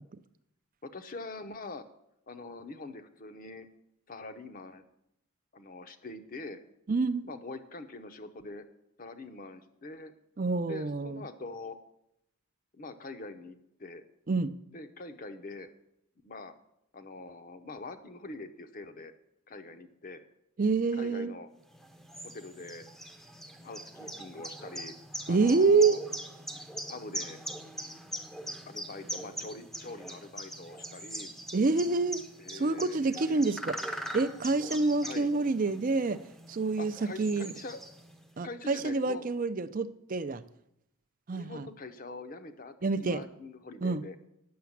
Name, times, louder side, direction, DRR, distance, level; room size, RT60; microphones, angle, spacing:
voice 1, 0.8-1.8 2.3-3.7 4.1-4.8 5.5-6.6 7.2-8.6 9.0-10.1 10.7-11.8 12.7-14.0 14.7-15.7 16.2-16.5 16.9-19.1 19.5-20.2 20.9-21.5 22.3-22.8 23.6-24.9 25.3-26.0 26.9-27.4 28.7-31.3 32.4-33.4 35.0-35.3 36.8-37.8 38.4-39.2 41.3-44.2, left 3 dB, 40° left, 9 dB, 0.7 m, -44 dB
voice 2, 6.9-7.2 10.4-11.2 14.3-14.5 20.6-21.3 25.3-26.0 31.5-32.2 32.5-36.2 36.5-36.9 37.2-37.5 38.4-40.4 41.3-41.7 42.8-43.2 43.8-44.0, right 3 dB, 35° right, 12 dB, 0.4 m, -27 dB
sound 1, 21.7-38.3, right 1 dB, ahead, 0.6 m, -42 dB
9.4 x 6.8 x 7.2 m, 0.78 s
head